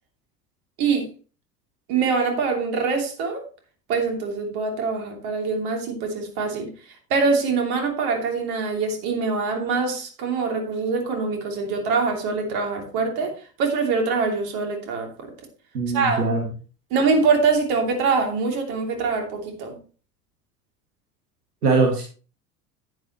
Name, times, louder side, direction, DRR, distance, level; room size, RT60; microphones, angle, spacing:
voice 1, 1.9-3.4 3.9-6.7 7.1-13.3 13.6-15.1 15.9-16.3 16.9-19.8, right 4 dB, 50° right, 2 dB, 3.0 m, -24 dB
voice 2, 15.7-16.4 21.6-22.0, right 3 dB, 80° right, 1 dB, 2.1 m, -21 dB
10.5 x 9.3 x 3.0 m, 0.37 s
figure-of-eight pair, 75°, 47 cm